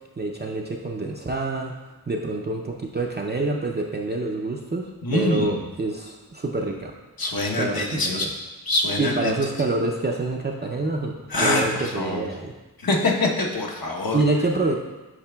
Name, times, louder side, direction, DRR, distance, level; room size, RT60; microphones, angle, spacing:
voice 1, 0.2-1.7 2.1-6.9 7.6-8.3 9.0-12.5 14.1-14.8, right 2 dB, 30° right, 0 dB, 0.4 m, -26 dB
voice 2, 5.0-5.6 7.2-8.3 8.7-9.3 11.3-12.2 12.8-14.2, left 2 dB, 65° left, -1 dB, 1.0 m, -24 dB
8.5 x 5.0 x 2.2 m, 1.1 s
wide cardioid pair, 85°, 37 cm